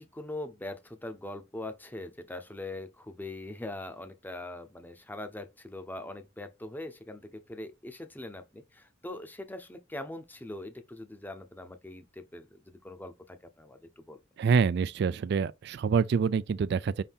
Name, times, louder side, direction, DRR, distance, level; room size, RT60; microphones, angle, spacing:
voice 1, 0.0-14.2, left 1 dB, 10° left, 0.7 m, -42 dB
voice 2, 14.4-17.0, right 5 dB, 60° right, 0.3 m, -26 dB
5.7 x 2.7 x 3.5 m
head